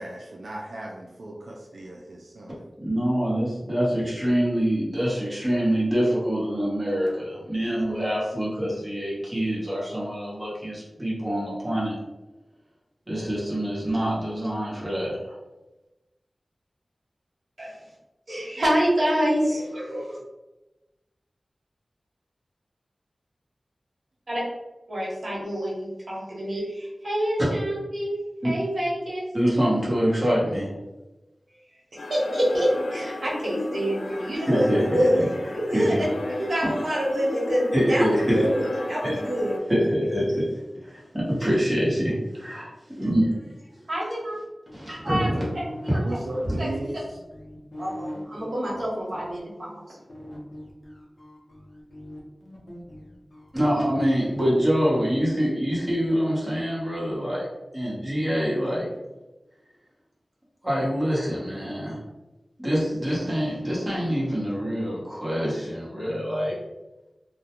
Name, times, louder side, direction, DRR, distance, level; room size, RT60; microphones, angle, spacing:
voice 1, 0.0-2.6 46.0-47.2, right 1 dB, 85° right, -2 dB, 0.3 m, -35 dB
voice 2, 2.8-11.9 13.1-15.3 27.4-27.5 28.4-28.5 29.3-30.8 34.3-35.3 35.7-36.1 37.7-38.5 39.0-39.1 39.7-42.7 43.0-43.3 44.7-45.5 45.9-46.0 53.5-57.5 57.7-58.9 60.6-62.0 62.6-66.6, equal, 15° right, -7 dB, 1.0 m, -25 dB
voice 3, 18.3-20.2 24.3-24.4 24.9-28.2 28.4-29.2 32.0-35.3 35.5-36.0 36.4-38.1 38.3-39.5 43.9-44.4 45.0-45.3 45.5-45.6 46.6-46.7 47.8-49.8, equal, 60° right, -6 dB, 1.0 m, -26 dB
sound 1, 32.0-39.6, left 1 dB, 85° left, 0.4 m, -34 dB
sound 2, 44.7-49.4 50.1-55.0, left 1 dB, 45° left, 0.7 m, -41 dB
2.3 x 2.1 x 2.9 m, 1.0 s
wide cardioid pair, 85°, 0 cm